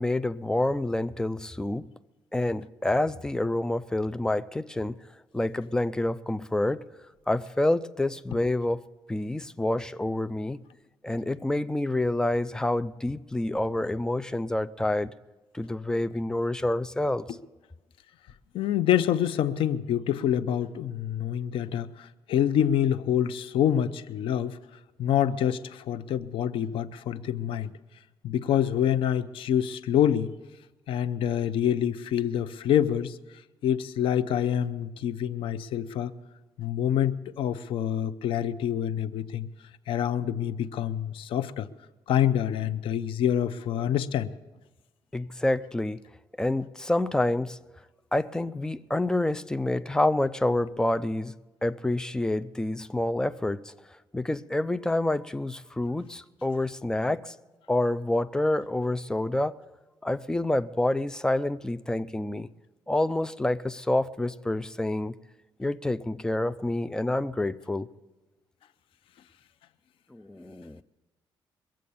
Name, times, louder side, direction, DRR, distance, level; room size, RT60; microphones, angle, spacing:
voice 1, 0.0-1.9 2.3-5.0 5.3-6.8 7.3-8.8 9.1-10.6 11.0-15.1 15.5-17.3 45.1-46.0 46.4-47.6 48.1-51.3 51.6-53.7 54.1-57.3 57.7-59.6 60.0-62.5 62.9-65.2 65.6-67.9 70.1-70.8, left 1 dB, 10° left, 0.4 m, -28 dB
voice 2, 18.5-24.6 25.0-27.7 28.2-30.3 30.9-33.2 33.6-36.1 36.6-39.5 39.9-41.7 42.1-44.3, left 10 dB, 80° left, 0.6 m, -26 dB
22.5 x 7.6 x 7.0 m
cardioid pair, 135°, 9 cm